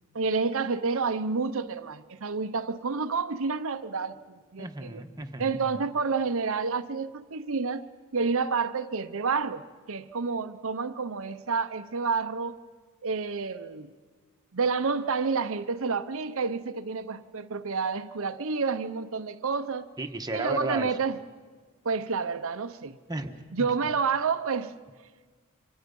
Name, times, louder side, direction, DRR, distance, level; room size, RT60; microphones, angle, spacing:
voice 1, 0.1-5.0 5.4-7.8 8.1-12.6 13.0-13.9 14.5-19.9 20.3-21.2 21.8-23.0 23.5-24.7, right 4 dB, 65° right, 0.8 m, -29 dB
voice 2, 4.6-5.8 20.0-20.9 23.1-23.7, right 2 dB, 20° right, 1.2 m, -34 dB
28.5 x 25.0 x 5.4 m
head